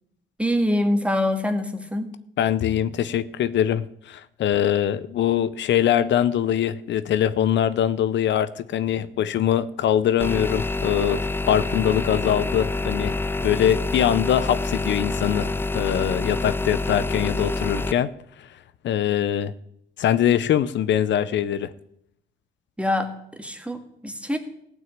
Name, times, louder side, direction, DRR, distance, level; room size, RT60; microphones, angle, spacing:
voice 1, 0.4-2.1 22.8-24.4, left 1 dB, 5° right, 6 dB, 1.8 m, -25 dB
voice 2, 2.4-13.1 13.4-18.1 18.8-19.5 20.0-21.7, left 10 dB, 65° left, 15 dB, 0.6 m, -22 dB
sound 1, 10.2-17.9, left 3 dB, 10° left, 0.4 m, -27 dB
15.0 x 6.3 x 8.9 m, 0.76 s
cardioid pair, 90°, 20 cm